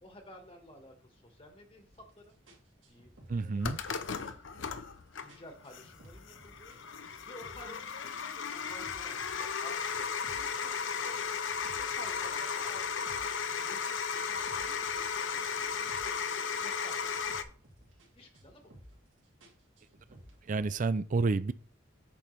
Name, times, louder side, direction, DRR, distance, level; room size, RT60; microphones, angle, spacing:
voice 1, 0.0-1.9 2.2-2.3 2.9-4.4 5.2-6.8 7.2-11.2 11.8-13.2 13.5-17.2 18.1-18.7, left 1 dB, 30° left, 1.3 m, -53 dB
sound 1, 1.9-2.1 2.5-5.0 5.3-6.8 7.0-7.8 8.1-10.6 10.9-13.4 13.8-16.3 16.6-18.1 18.3-19.1 19.4-20.8, right 1 dB, 80° right, 2.4 m, -56 dB
voice 2, 3.3-3.8 20.5-21.5, right 3 dB, 40° right, 0.4 m, -29 dB
sound 2, 3.6-17.4, left 6 dB, 70° left, 0.7 m, -35 dB
8.7 x 5.8 x 3.2 m
head